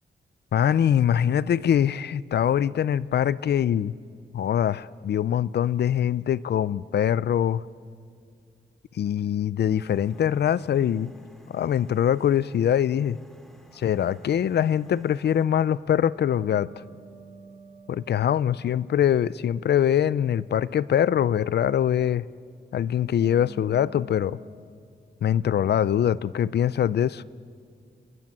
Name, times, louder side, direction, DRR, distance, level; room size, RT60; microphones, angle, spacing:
voice 1, 0.5-3.9 4.3-7.6 9.0-11.1 11.5-13.2 13.7-16.7 17.9-22.2 22.7-24.4 25.2-27.2, left 9 dB, 75° left, 19 dB, 0.5 m, -23 dB
sound 1, 9.7-15.5, right 1 dB, ahead, 2.4 m, -54 dB
sound 2, 16.3-20.5 23.2-24.6, equal, 45° right, 6.5 m, -49 dB
30.0 x 22.0 x 7.5 m, 2.2 s
wide cardioid pair, 170°, 17 cm